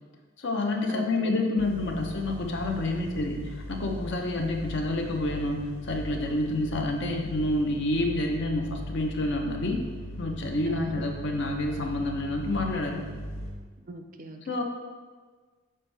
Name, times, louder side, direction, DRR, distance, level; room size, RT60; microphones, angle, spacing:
voice 1, 0.4-3.4 3.7-9.8 10.2-13.0 14.5-14.6, left 2 dB, 55° left, 2 dB, 0.7 m, -28 dB
voice 2, 0.9-1.8 2.8-3.3 4.4-4.9 10.7-11.2 13.8-14.4, right 1 dB, 40° right, 6 dB, 0.4 m, -41 dB
sound 1, 1.6-13.5, right 1 dB, 35° left, 1.6 m, -39 dB
6.7 x 4.3 x 3.3 m, 1.4 s
head